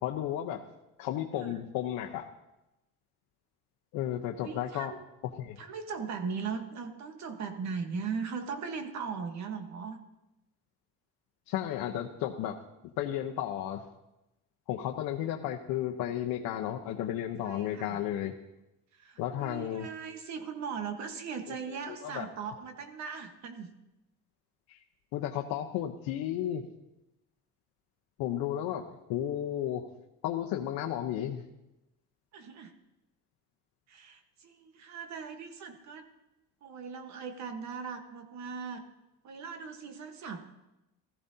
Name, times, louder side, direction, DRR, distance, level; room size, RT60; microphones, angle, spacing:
voice 1, 0.0-0.6 1.0-2.3 3.9-4.9 5.2-5.6 11.5-13.8 14.7-18.3 19.2-19.9 21.9-22.3 24.7-24.8 25.1-26.7 28.2-29.9 30.2-31.4, left 11 dB, 80° left, 1 dB, 0.9 m, -33 dB
voice 2, 4.4-5.0 5.6-10.0 17.4-18.0 18.9-23.7 32.3-32.7 33.9-36.0 36.6-38.8 39.2-40.4, right 5 dB, 50° right, 6 dB, 1.3 m, -39 dB
16.0 x 14.5 x 2.8 m, 0.94 s
cardioid pair, 140°, 34 cm